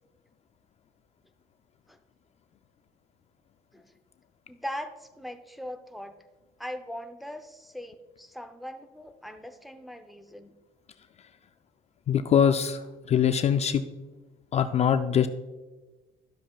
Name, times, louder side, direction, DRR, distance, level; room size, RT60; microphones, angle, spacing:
voice 1, 4.5-6.1 6.6-10.5, equal, ahead, 6 dB, 0.6 m, -40 dB
voice 2, 12.1-13.8 14.5-15.3, left 8 dB, 40° left, 10 dB, 0.4 m, -23 dB
12.0 x 7.4 x 2.4 m, 1.2 s
cardioid pair, 110°, 17 cm